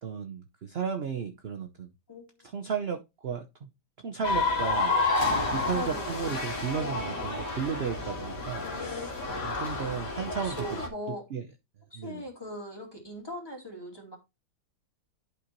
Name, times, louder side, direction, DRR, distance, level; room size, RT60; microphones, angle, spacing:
voice 1, 0.0-1.9 2.4-3.7 4.0-5.0 5.5-9.1 9.4-10.7 11.3-11.4 12.0-12.2, right 7 dB, 50° right, 0.8 m, -34 dB
voice 2, 2.1-2.4 5.7-6.3 8.6-9.3 10.4-11.2 11.9-14.2, equal, 15° left, 2.6 m, -40 dB
sound 1, 4.2-10.9, left 3 dB, 70° left, 2.6 m, -30 dB
11.5 x 5.1 x 3.0 m
omnidirectional pair, 1.8 m